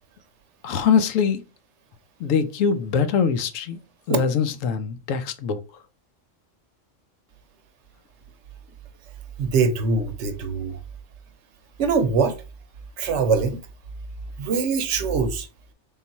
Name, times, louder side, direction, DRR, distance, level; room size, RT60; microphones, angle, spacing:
voice 1, 0.6-1.4 2.2-3.8 4.1-5.6, left 6 dB, 85° left, 1.0 m, -23 dB
voice 2, 9.4-10.8 11.8-12.3 13.0-13.6 14.4-15.5, right 5 dB, 70° right, 0.9 m, -23 dB
3.7 x 2.4 x 3.9 m
omnidirectional pair, 1.3 m